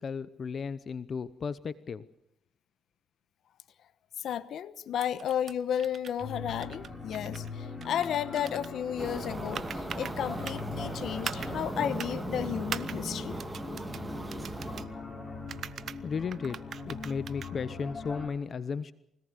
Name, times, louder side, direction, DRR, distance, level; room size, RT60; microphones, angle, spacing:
voice 1, 0.0-2.1 16.0-16.6 16.9-18.9, left 6 dB, 45° left, 0.8 m, -35 dB
voice 2, 4.2-13.4, left 9 dB, 70° left, 1.0 m, -33 dB
sound 1, 5.0-5.5 5.8-6.2 6.5-7.5 7.8-8.7 9.5-10.1 10.4-10.6 11.2-11.5 12.0-12.1 12.7-13.0 13.4-14.0 14.3-14.9 15.5-16.0 16.3-17.5, right 7 dB, 55° right, 0.8 m, -40 dB
sound 2, 6.2-18.3, left 4 dB, 20° left, 7.4 m, -41 dB
sound 3, 9.0-14.9, right 2 dB, 15° right, 2.4 m, -38 dB
24.5 x 18.0 x 6.8 m
cardioid pair, 90°, 0 cm